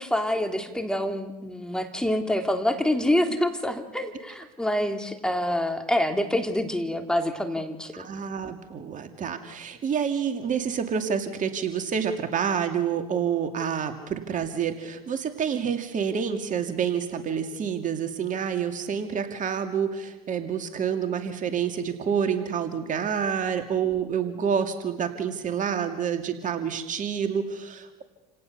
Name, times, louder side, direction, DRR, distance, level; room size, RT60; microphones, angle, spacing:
voice 1, 0.0-7.9, left 1 dB, 5° left, 5 dB, 3.2 m, -26 dB
voice 2, 7.9-28.0, right 7 dB, 40° right, 7 dB, 2.4 m, -28 dB
28.5 x 18.0 x 6.8 m, 1.1 s
hypercardioid pair, 75°, 20 cm